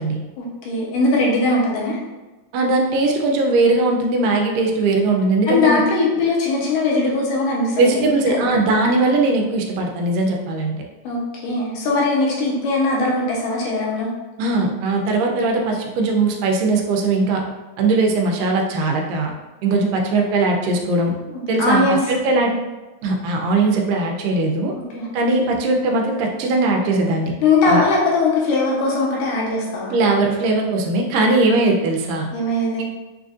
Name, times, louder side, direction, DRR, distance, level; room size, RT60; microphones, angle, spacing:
voice 1, 0.4-2.0 5.5-8.0 8.3-8.4 11.0-14.1 21.6-22.0 24.9-25.1 27.4-29.9 32.3-32.8, left 3 dB, 80° left, -4 dB, 2.4 m, -20 dB
voice 2, 2.5-5.8 7.8-10.9 14.4-17.4 17.8-19.3 19.6-21.1 21.5-22.5 23.0-24.7 25.1-27.3 27.7-27.8 29.9-32.3, right 3 dB, 80° right, 1 dB, 2.2 m, -19 dB
6.1 x 2.5 x 2.4 m, 1.2 s
omnidirectional pair, 4.0 m